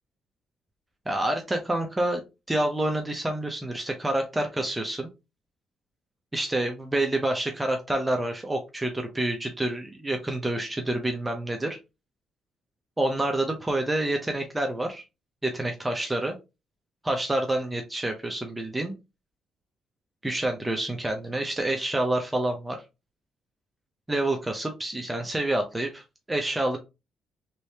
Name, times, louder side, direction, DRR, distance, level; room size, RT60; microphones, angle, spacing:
voice 1, 1.1-2.2 2.5-5.1 6.3-11.8 13.0-15.0 15.4-16.4 17.0-18.9 20.2-22.8 24.1-26.8, right 1 dB, 15° right, 3 dB, 0.6 m, -28 dB
3.2 x 3.0 x 2.8 m, 0.26 s
cardioid pair, 90°, 0 cm